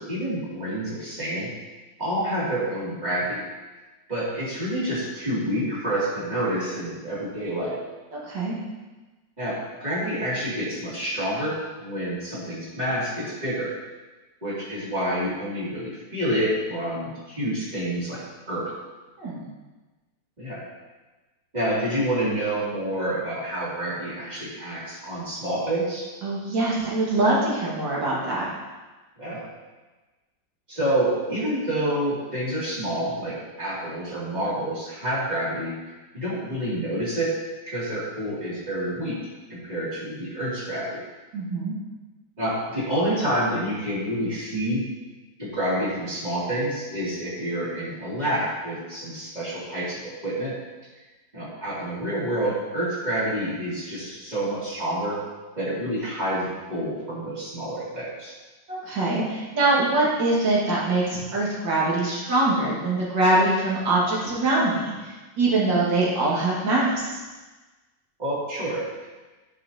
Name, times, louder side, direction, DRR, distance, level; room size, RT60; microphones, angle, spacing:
voice 1, 0.0-1.5 2.0-3.4 4.1-7.7 9.4-13.7 14.4-18.2 18.5-18.7 20.4-20.6 21.5-26.1 29.2-29.4 30.7-35.7 36.1-37.3 37.7-39.2 39.5-41.0 42.4-44.8 45.4-50.5 51.3-55.2 55.6-58.3 68.2-68.8, right 1 dB, 20° right, -9 dB, 2.6 m, -28 dB
voice 2, 8.1-8.6 19.2-19.4 26.2-28.5 41.3-41.7 58.7-67.2, right 2 dB, 75° right, -6 dB, 2.4 m, -23 dB
9.4 x 5.8 x 2.8 m, 1.2 s
omnidirectional pair, 2.1 m